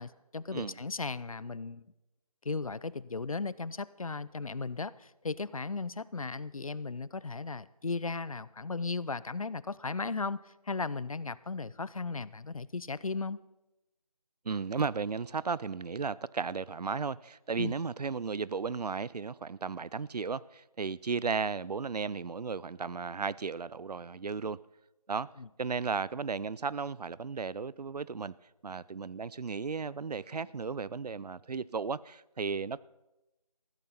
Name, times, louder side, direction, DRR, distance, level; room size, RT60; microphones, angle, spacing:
voice 1, 0.0-1.9 2.4-13.4 17.6-17.7 25.4-25.5, left 4 dB, 60° left, 0.5 m, -36 dB
voice 2, 14.4-24.6 25.1-25.3 25.6-28.3 28.6-32.8, right 5 dB, 90° right, 0.5 m, -35 dB
15.0 x 13.5 x 4.2 m
figure-of-eight pair, 175°, 20 cm